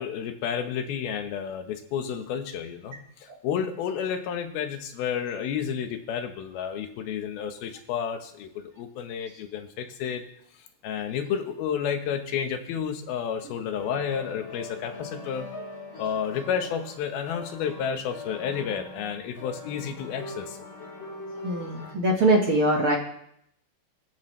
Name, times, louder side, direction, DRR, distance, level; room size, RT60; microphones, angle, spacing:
voice 1, 0.0-10.2 10.8-15.5 16.0-20.6, left 8 dB, 80° left, 6 dB, 3.0 m, -31 dB
sound 1, 13.8-21.9, left 2 dB, 60° left, 5.4 m, -41 dB
voice 2, 21.4-23.0, right 1 dB, 45° right, 0 dB, 1.9 m, -22 dB
23.0 x 12.0 x 3.3 m, 0.72 s
omnidirectional pair, 4.3 m